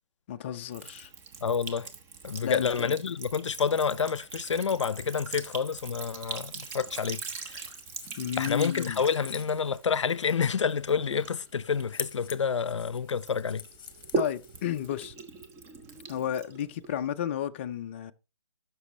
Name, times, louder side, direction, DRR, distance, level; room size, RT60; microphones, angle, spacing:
voice 1, 0.3-1.1 2.4-3.0 8.2-9.0 14.1-15.1 16.1-18.1, left 10 dB, 25° left, 0.3 m, -32 dB
Sink (filling or washing) / Trickle dribble, 0.7-12.8 13.2-17.1, right 4 dB, 15° right, 0.8 m, -41 dB
voice 2, 1.4-1.9 2.2-7.6 8.3-13.6, left 6 dB, 85° left, 0.5 m, -29 dB
Putting On A Belt, 7.5-15.0, left 8 dB, 50° left, 0.9 m, -46 dB
13.0 x 6.0 x 3.2 m
hypercardioid pair, 150°, 15 cm